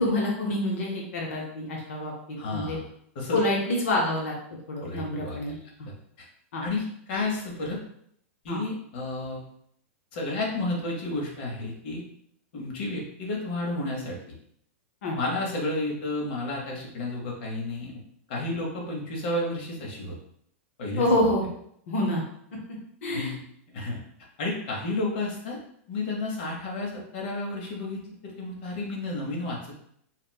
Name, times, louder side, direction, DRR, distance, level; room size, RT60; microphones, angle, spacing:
voice 1, 0.0-2.8 3.3-4.3 4.7-5.6 6.5-6.6 8.5-8.6 15.0-15.2 21.0-21.5 21.9-22.2 23.0-23.3, left 1 dB, 80° left, -1 dB, 0.8 m, -27 dB
voice 2, 2.4-2.8 3.1-3.4 4.8-5.6 6.2-6.3 6.6-7.8 8.4-9.4 10.1-12.0 12.5-14.2 15.2-18.0 18.3-20.2 20.8-21.1 23.1-23.4 23.7-24.0 24.4-25.6 25.9-29.7, left 2 dB, 50° left, -2 dB, 0.9 m, -31 dB
4.0 x 2.1 x 2.2 m, 0.70 s
supercardioid pair, 160°, 7 cm